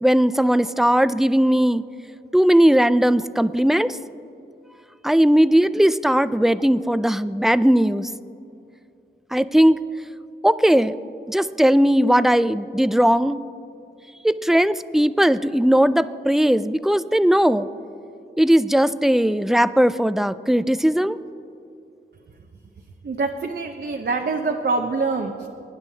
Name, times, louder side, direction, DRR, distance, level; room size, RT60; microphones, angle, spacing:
voice 1, 0.0-1.8 2.3-4.0 5.0-8.1 9.3-9.8 10.4-11.0 11.3-13.4 14.2-17.7 18.4-21.2, equal, ahead, 14 dB, 0.4 m, -18 dB
voice 2, 23.0-25.5, right 3 dB, 55° right, 2 dB, 0.8 m, -25 dB
24.5 x 9.7 x 2.8 m, 2.5 s
cardioid pair, 55°, 20 cm